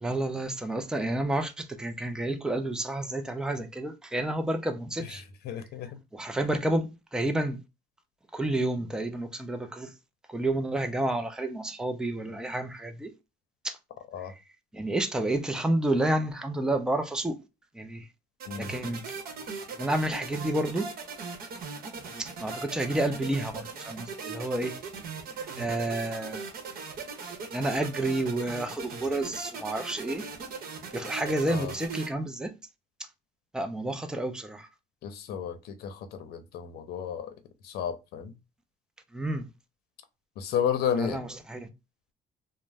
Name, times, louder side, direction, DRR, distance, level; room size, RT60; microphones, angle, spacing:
voice 1, 0.0-5.2 6.1-7.6 8.3-9.9 10.3-13.1 13.6-13.8 14.7-17.4 17.7-18.0 18.6-19.0 19.8-20.9 22.2-24.7 25.6-26.5 27.5-30.3 30.9-32.5 33.5-34.7 39.1-39.5 41.0-41.7, right 1 dB, 5° right, 0.4 m, -30 dB
voice 2, 5.4-5.9 14.1-14.3 18.5-18.7 31.5-31.7 35.0-37.3 37.6-38.3 40.4-41.2, left 8 dB, 70° left, 0.6 m, -32 dB
sound 1, 18.4-32.1, right 4 dB, 60° right, 0.9 m, -39 dB
2.5 x 2.1 x 3.2 m
cardioid pair, 110°, 17 cm